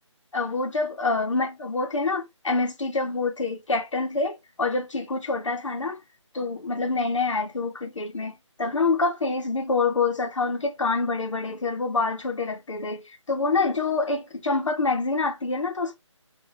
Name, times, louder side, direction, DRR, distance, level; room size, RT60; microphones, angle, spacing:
voice 1, 0.3-6.0 6.3-15.9, left 3 dB, 70° left, 1.2 m, -26 dB
4.1 x 2.8 x 2.9 m
figure-of-eight pair, 170°, 16 cm